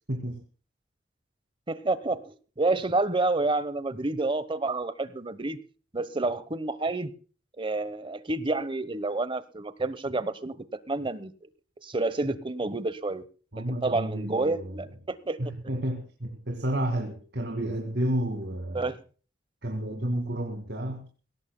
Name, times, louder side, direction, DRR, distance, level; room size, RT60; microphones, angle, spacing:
voice 1, 0.1-0.4 13.5-14.8 15.4-18.9 19.6-21.1, right 1 dB, 65° right, 3 dB, 2.1 m, -31 dB
voice 2, 1.7-5.6 5.9-7.1 7.6-10.6 10.9-11.3 11.8-13.2 13.6-15.4 18.7-19.0, right 2 dB, 30° right, 14 dB, 1.0 m, -29 dB
21.5 x 17.5 x 2.2 m, 0.38 s
head